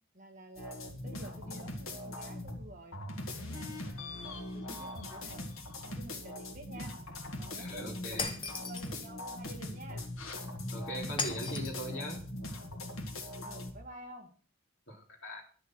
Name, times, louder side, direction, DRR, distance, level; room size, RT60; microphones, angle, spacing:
voice 1, 0.1-3.0 3.4-5.5 5.8-6.9 7.4-10.1 13.4-14.3, right 1 dB, 35° right, 2 dB, 1.9 m, -50 dB
sound 1, 0.6-2.7 2.9-13.7, left 1 dB, 75° left, 1.8 m, -41 dB
voice 2, 7.6-8.3 10.7-12.2 14.9-15.4, equal, 55° left, -1 dB, 3.5 m, -40 dB
Shatter, 8.2-8.9 11.2-11.9, left 4 dB, 20° left, 0.8 m, -37 dB
11.0 x 6.8 x 6.2 m, 0.43 s
head